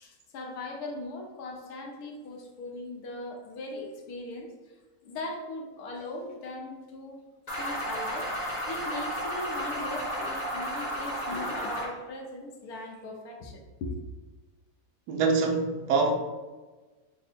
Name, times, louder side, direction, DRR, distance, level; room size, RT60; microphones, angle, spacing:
voice 1, 0.0-4.5 5.0-7.2 7.6-13.9, left 2 dB, 75° left, 2 dB, 1.1 m, -39 dB
sound 1, 7.5-11.9, equal, 35° left, 0.8 m, -33 dB
voice 2, 15.1-16.1, right 4 dB, 80° right, 2 dB, 1.1 m, -24 dB
3.4 x 2.1 x 4.2 m, 1.2 s
omnidirectional pair, 1.7 m